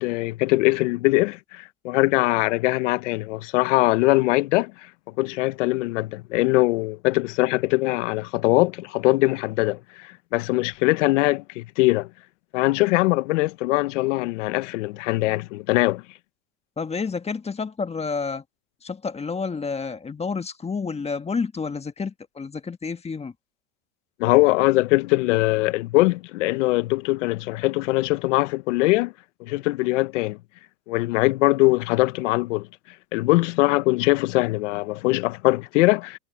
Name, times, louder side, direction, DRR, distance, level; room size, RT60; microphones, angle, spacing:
voice 1, 0.0-4.9 5.2-12.1 12.5-16.0 24.2-29.1 29.4-30.4 30.9-32.7 33.1-36.2, left 21 dB, 75° left, 1.1 m, -22 dB
voice 2, 16.8-18.4 18.8-23.3, left 5 dB, 15° left, 1.6 m, -29 dB
hypercardioid pair, 105°, 37 cm